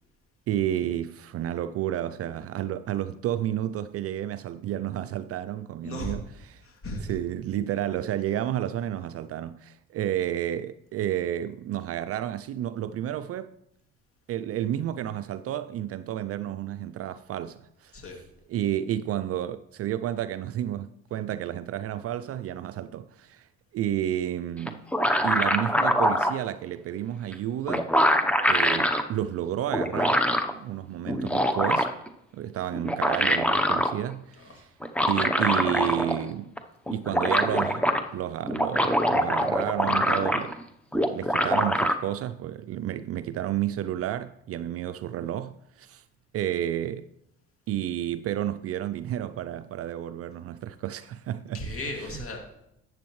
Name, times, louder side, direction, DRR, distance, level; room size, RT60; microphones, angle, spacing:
voice 1, 0.5-6.2 7.1-13.5 14.3-17.9 18.5-23.5 23.7-24.8 25.2-27.9 28.5-30.2 30.5-31.9 32.3-34.5 35.0-36.5 36.9-37.9 38.1-40.6 41.0-46.0 46.3-47.1 47.7-51.6, right 11 dB, 50° right, 0.4 m, -31 dB
voice 2, 5.8-6.2 6.6-7.2 17.9-18.2 34.3-34.6 51.5-52.4, left 1 dB, 45° left, 2.5 m, -36 dB
sound 1, 24.7-26.4 27.3-27.4 27.7-29.0 29.7-30.5 31.1-32.1 32.7-33.9 34.8-36.3 36.6-36.7 36.9-38.0 38.4-40.6 40.9-41.9, equal, 5° left, 0.8 m, -24 dB
11.5 x 7.8 x 3.1 m
supercardioid pair, 70°, 31 cm